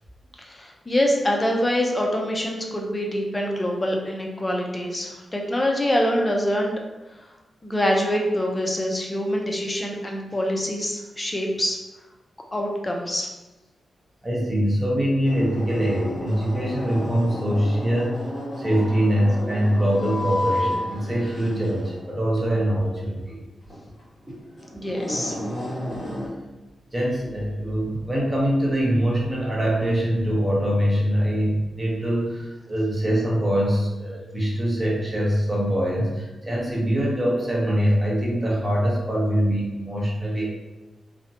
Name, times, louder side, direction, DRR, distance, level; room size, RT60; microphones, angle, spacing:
voice 1, 0.4-6.7 7.6-11.8 12.5-13.3 24.7-25.4, equal, 20° left, 0 dB, 0.4 m, -25 dB
voice 2, 14.2-18.2 18.6-23.4 26.9-40.5, equal, 20° right, -5 dB, 0.7 m, -23 dB
sound 1, 15.2-26.3, left 1 dB, 45° left, 0.9 m, -32 dB
2.6 x 2.1 x 2.6 m, 1.1 s
wide cardioid pair, 105°, 0 cm